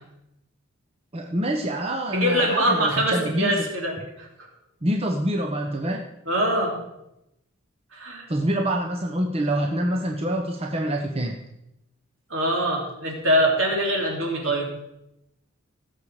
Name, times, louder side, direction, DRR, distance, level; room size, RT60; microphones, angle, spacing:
voice 1, 1.1-3.5 4.8-6.0 8.3-11.4, right 1 dB, 30° right, 2 dB, 0.9 m, -26 dB
voice 2, 2.1-4.5 6.3-6.7 7.9-8.3 12.3-14.7, equal, 65° right, 0 dB, 3.4 m, -23 dB
17.0 x 7.3 x 4.9 m, 0.85 s
head